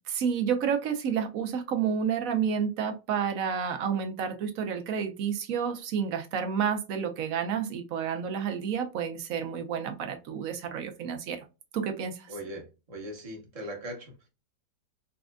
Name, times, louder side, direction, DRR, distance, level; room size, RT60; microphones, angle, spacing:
voice 1, 0.1-11.4 11.7-12.3, right 7 dB, 65° right, 0.9 m, -30 dB
voice 2, 12.3-14.3, equal, 25° right, 0.9 m, -40 dB
4.1 x 2.5 x 2.2 m
omnidirectional pair, 1.9 m